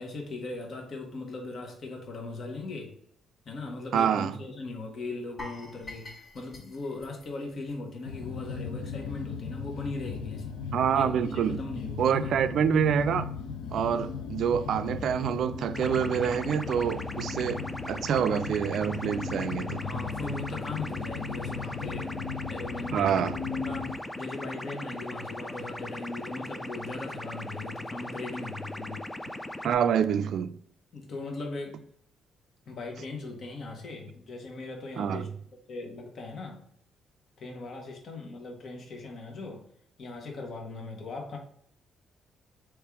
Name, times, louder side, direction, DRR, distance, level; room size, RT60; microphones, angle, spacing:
voice 1, 0.0-3.0 3.4-10.5 10.9-12.3 19.8-22.1 22.5-29.1 30.9-31.8 32.7-35.3 35.7-36.6 37.4-39.6 40.0-41.4, left 3 dB, 55° left, 1.2 m, -39 dB
voice 2, 3.9-4.4 10.7-11.6 12.0-13.3 13.7-17.6 17.9-19.8 22.9-23.4 29.6-30.5 35.0-35.2, right 8 dB, 70° right, 0.3 m, -26 dB
sound 1, 5.4-8.4 8.7-8.9 9.3-9.4, left 2 dB, 35° left, 1.3 m, -46 dB
sound 2, 8.0-23.9, left 5 dB, 90° left, 0.6 m, -37 dB
sound 3, 15.7-29.7, left 1 dB, 10° left, 0.4 m, -39 dB
3.4 x 3.1 x 4.6 m
cardioid pair, 90°, 0 cm